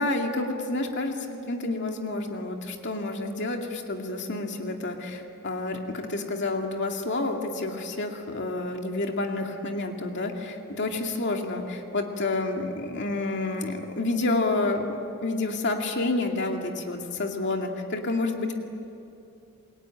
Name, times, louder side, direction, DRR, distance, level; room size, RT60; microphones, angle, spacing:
voice 1, 0.0-18.5, left 2 dB, 55° left, 2 dB, 2.3 m, -29 dB
28.0 x 22.0 x 8.9 m, 2.7 s
head